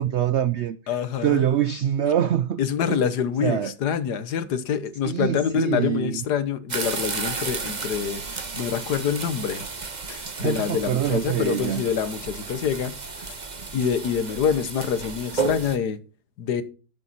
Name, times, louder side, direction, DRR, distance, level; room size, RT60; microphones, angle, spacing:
voice 1, 0.0-0.8 1.2-2.6 3.4-3.7 5.1-6.2 10.4-11.8, right 10 dB, 85° right, 0.6 m, -24 dB
voice 2, 0.9-1.4 2.6-9.6 10.1-13.0 13.3-13.4 13.7-16.0 16.4-16.6, left 7 dB, 70° left, 1.6 m, -26 dB
sound 1, 6.7-15.8, right 4 dB, 30° right, 1.1 m, -33 dB
11.5 x 7.5 x 4.1 m
omnidirectional pair, 1.9 m